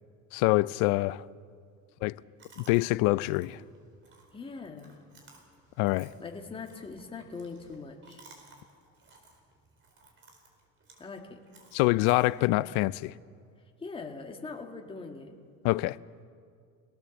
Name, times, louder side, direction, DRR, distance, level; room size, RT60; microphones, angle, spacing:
voice 1, 0.3-1.2 2.0-2.2 2.6-3.6 5.8-6.1 11.7-13.1 15.6-16.0, left 20 dB, 65° left, 0.7 m, -25 dB
Chewing mastication, 2.4-12.8, right 3 dB, 30° right, 4.7 m, -58 dB
voice 2, 4.3-5.0 6.2-8.2 11.0-11.4 13.8-15.3, left 4 dB, 15° left, 2.1 m, -42 dB
27.0 x 18.0 x 7.3 m
cardioid pair, 140°, 37 cm